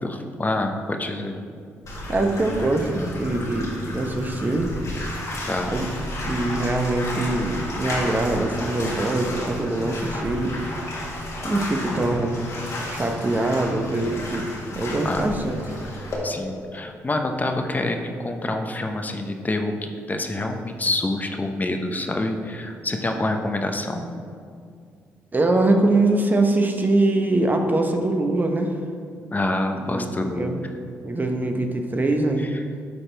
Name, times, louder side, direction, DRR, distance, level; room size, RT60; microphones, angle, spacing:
voice 1, 0.0-1.4 5.4-5.8 15.0-15.3 16.2-24.1 29.3-30.6 32.5-32.6, left 2 dB, 25° left, 5 dB, 0.9 m, -27 dB
Bathtub (filling or washing), 1.9-16.2, left 1 dB, 55° left, 1.7 m, -32 dB
voice 2, 2.1-4.7 5.7-5.9 6.3-10.5 10.9-11.1 11.4-12.4 12.8-15.6 25.3-28.7 29.8-30.6 31.0-32.4, right 2 dB, 30° right, 4 dB, 1.0 m, -23 dB
12.0 x 4.2 x 3.4 m, 2.2 s
supercardioid pair, 50°, 6 cm